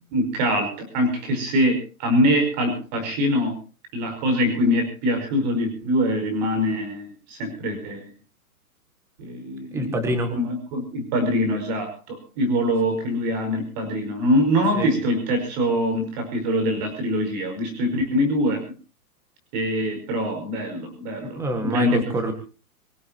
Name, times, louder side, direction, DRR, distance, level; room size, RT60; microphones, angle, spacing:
voice 1, 0.1-3.6 3.9-8.1 9.2-10.0 10.4-18.7 19.5-22.0, equal, 30° right, 7 dB, 5.3 m, -24 dB
voice 2, 9.7-10.3 14.7-14.9 21.3-22.3, right 1 dB, 5° right, 7 dB, 1.7 m, -25 dB
25.0 x 16.0 x 2.9 m, 0.32 s
hypercardioid pair, 170°, 45 cm